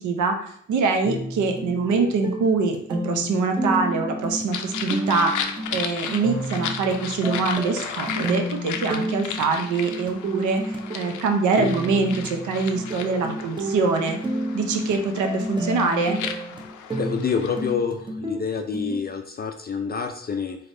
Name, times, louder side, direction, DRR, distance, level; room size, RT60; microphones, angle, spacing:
voice 1, 0.0-5.3 5.7-14.2 14.5-16.2, right 4 dB, 80° right, 5 dB, 0.7 m, -24 dB
sound 1, 1.0-19.0, equal, 15° right, 0.6 m, -31 dB
sound 2, 4.5-17.7, left 7 dB, 90° left, 0.5 m, -35 dB
voice 2, 17.0-20.6, left 6 dB, 35° left, 5 dB, 0.4 m, -27 dB
4.1 x 3.3 x 2.6 m, 0.65 s
cardioid pair, 80°, 29 cm